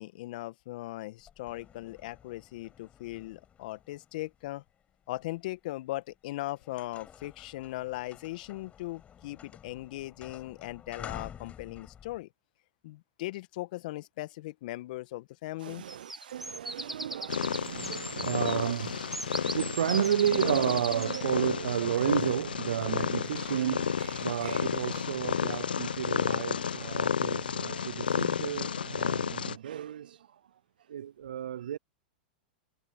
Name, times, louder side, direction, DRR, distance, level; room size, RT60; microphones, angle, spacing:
voice 1, 0.0-4.6 5.1-12.3 12.8-15.8, left 18 dB, 60° left, 1.9 m, -39 dB
sound 1, 1.2-5.4 6.0-6.2 6.4-12.2, left 8 dB, 25° left, 5.8 m, -50 dB
voice 2, 15.6-30.3 30.9-31.8, right 10 dB, 75° right, 0.5 m, -32 dB
sound 2, 15.9-21.3, right 1 dB, 5° right, 1.8 m, -40 dB
Purr, 17.3-29.6, left 7 dB, 85° left, 0.8 m, -32 dB
hypercardioid pair, 105°, 5 cm